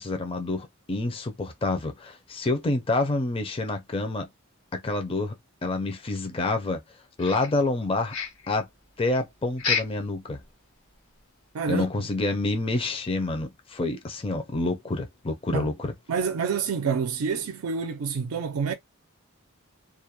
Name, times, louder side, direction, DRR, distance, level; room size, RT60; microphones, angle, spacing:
voice 1, 0.0-4.3 4.7-5.3 5.6-6.8 7.2-8.1 8.5-8.7 9.0-10.4 11.7-15.9, left 2 dB, 25° left, 0.5 m, -28 dB
sound 1, 7.2-7.8 8.1-8.5 9.6-10.1 10.4-10.5 11.0-11.1 11.6-11.7, left 5 dB, 85° left, 1.1 m, -29 dB
voice 2, 11.5-12.1 15.5-15.7 16.1-18.7, right 6 dB, 90° right, 0.4 m, -28 dB
2.4 x 2.1 x 2.8 m
head